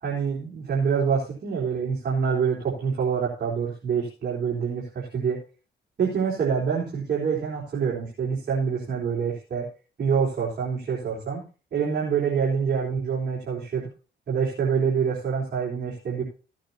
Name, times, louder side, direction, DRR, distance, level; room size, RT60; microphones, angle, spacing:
voice 1, 0.0-5.4 6.0-9.6 10.0-11.4 11.7-13.9 14.3-16.2, right 6 dB, 55° right, -6 dB, 4.1 m, -26 dB
16.5 x 9.1 x 2.9 m, 0.35 s
cardioid pair, 90°, 20 cm